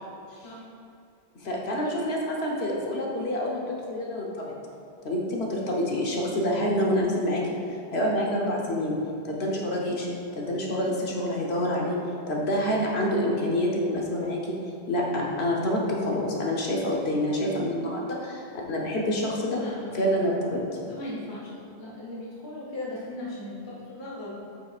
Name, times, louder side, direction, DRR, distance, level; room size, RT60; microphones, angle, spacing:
voice 1, 1.4-4.5 5.0-7.4 7.9-9.0 9.2-10.1 10.3-12.0 12.3-14.6 14.9-19.6 19.9-20.6, left 1 dB, 70° left, -2 dB, 1.2 m, -27 dB
voice 2, 19.6-19.9 20.8-24.4, left 1 dB, 25° left, -6 dB, 1.0 m, -38 dB
8.5 x 6.2 x 2.4 m, 2.5 s
omnidirectional pair, 1.1 m